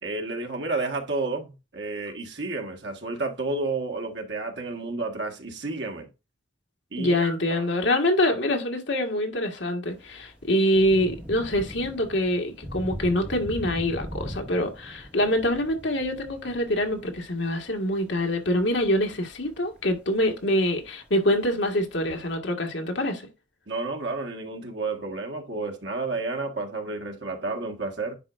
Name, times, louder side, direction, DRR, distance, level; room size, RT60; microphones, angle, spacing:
voice 1, 0.0-6.1 6.9-7.6 23.7-28.2, right 3 dB, 60° right, 1.6 m, -31 dB
voice 2, 7.0-23.3, left 1 dB, 65° left, 1.7 m, -25 dB
Thunder / Rain, 9.9-22.3, equal, 5° right, 2.0 m, -42 dB
10.0 x 4.5 x 2.5 m
head